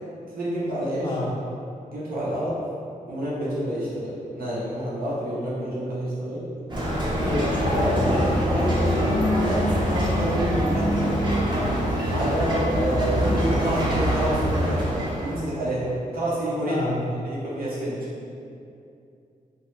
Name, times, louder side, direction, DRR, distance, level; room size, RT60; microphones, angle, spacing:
voice 1, 0.3-1.1 1.9-2.6 3.1-6.5 7.7-11.1 12.1-14.8 15.1-16.8 17.2-18.0, right 1 dB, 90° right, -8 dB, 0.7 m, -28 dB
sound 1, 6.7-15.5, equal, 30° right, 0.6 m, -24 dB
voice 2, 7.1-8.2 16.7-17.1, left 2 dB, 35° left, -3 dB, 0.4 m, -29 dB
2.9 x 2.2 x 3.1 m, 2.5 s
wide cardioid pair, 145°, 15 cm